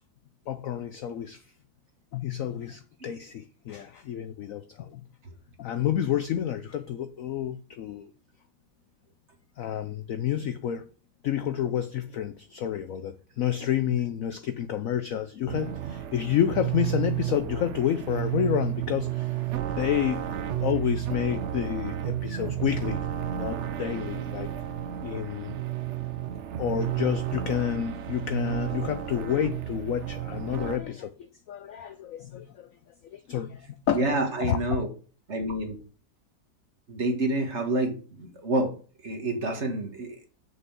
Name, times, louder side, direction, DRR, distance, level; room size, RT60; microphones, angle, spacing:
voice 1, 0.5-1.4 2.1-5.0 5.6-8.1 9.6-10.9 11.2-19.4 19.7-20.3 20.6-23.1 23.3-24.5 25.0-25.5 26.6-32.7 33.1-34.1 34.4-34.6, left 10 dB, 70° left, 0.8 m, -29 dB
sound 1, 15.5-30.8, right 12 dB, 70° right, 0.7 m, -32 dB
voice 2, 33.9-34.9 35.3-35.8 36.9-38.7 39.0-40.2, right 2 dB, 40° right, 1.9 m, -28 dB
6.3 x 6.1 x 7.3 m
omnidirectional pair, 2.0 m